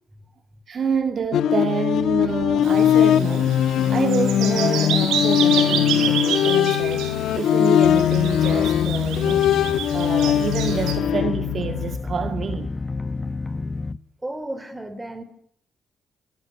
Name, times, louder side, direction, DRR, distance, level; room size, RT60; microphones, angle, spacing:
voice 1, 0.7-3.6 3.9-7.1 7.4-9.5 9.9-12.7, right 6 dB, 50° right, 2.0 m, -27 dB
sound 1, 1.3-12.0, left 10 dB, 75° left, 1.5 m, -20 dB
Bird vocalization bird call bird song, 2.6-10.9, right 7 dB, 90° right, 7.1 m, -29 dB
sound 2, 7.8-14.0, left 3 dB, 20° left, 1.1 m, -31 dB
voice 2, 14.2-15.2, right 1 dB, 15° right, 4.4 m, -33 dB
26.5 x 21.5 x 8.3 m
cardioid pair, 90°, 0 cm